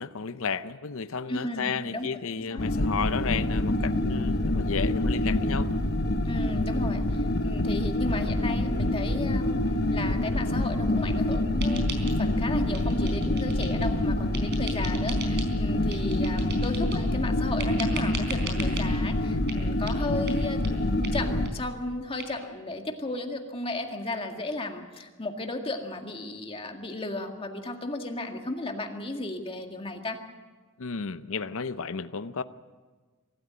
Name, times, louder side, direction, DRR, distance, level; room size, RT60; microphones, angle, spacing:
voice 1, 0.0-5.7 30.8-32.4, left 5 dB, 65° left, 12 dB, 0.7 m, -33 dB
voice 2, 1.3-2.1 2.4-2.6 6.2-20.6 20.9-30.2, left 2 dB, 25° left, 4 dB, 1.9 m, -34 dB
sound 1, 2.6-21.5, left 1 dB, 45° left, 1.1 m, -26 dB
sound 2, 11.6-12.4 12.7-13.9 14.3-15.5 15.9-17.1 17.6-18.9 19.5-19.6 19.9-20.0 20.3-20.4 20.6-20.7 21.0-21.1 21.4-21.5 21.8-21.9 22.2-22.3, right 4 dB, 50° right, 4.2 m, -39 dB
24.0 x 13.5 x 9.3 m, 1.4 s
head